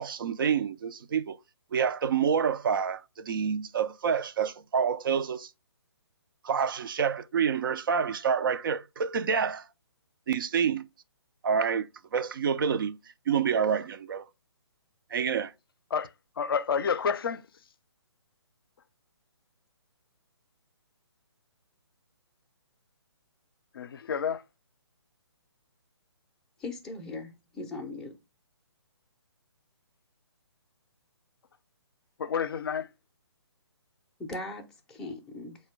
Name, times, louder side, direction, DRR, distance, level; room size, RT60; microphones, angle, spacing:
voice 1, 0.0-1.4 1.7-5.5 6.4-9.7 10.3-10.9 11.4-13.0 13.3-14.2 15.1-15.5, right 7 dB, 50° right, 0.4 m, -28 dB
voice 2, 16.4-17.4 23.7-24.4 32.2-32.9, left 6 dB, 55° left, 0.5 m, -29 dB
voice 3, 26.6-28.1 34.2-35.6, left 2 dB, 5° left, 0.5 m, -39 dB
4.2 x 2.2 x 4.6 m
figure-of-eight pair, 140°, 14 cm